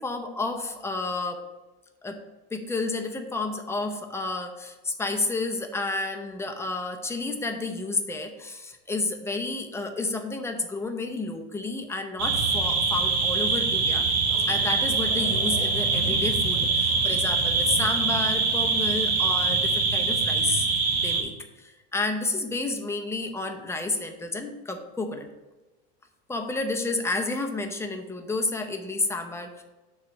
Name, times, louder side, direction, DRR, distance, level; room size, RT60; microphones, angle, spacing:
voice 1, 0.0-1.4 2.0-2.2 2.5-14.1 14.5-20.7 21.0-25.3 26.3-29.6, left 3 dB, 10° left, 4 dB, 0.6 m, -31 dB
sound 1, 12.2-21.2, right 4 dB, 80° right, 1.7 m, -24 dB
6.6 x 3.2 x 6.0 m, 1.1 s
supercardioid pair, 120°, 30 cm